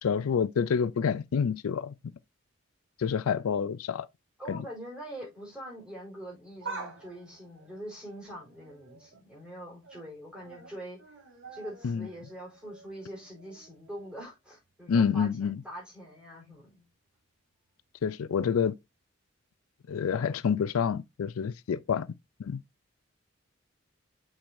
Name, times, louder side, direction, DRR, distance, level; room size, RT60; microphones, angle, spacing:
voice 1, 0.0-1.9 3.0-4.1 4.5-4.6 11.8-12.1 14.9-15.6 18.0-18.8 19.9-22.1 22.4-22.6, left 6 dB, 85° left, 0.4 m, -28 dB
voice 2, 4.4-11.0 11.5-16.8, equal, 5° right, 4.3 m, -44 dB
sound 1, 6.4-9.2 9.6-10.1 10.4-14.3 14.6-14.7 15.7-15.8, right 4 dB, 60° right, 1.6 m, -47 dB
6.3 x 6.0 x 2.5 m
head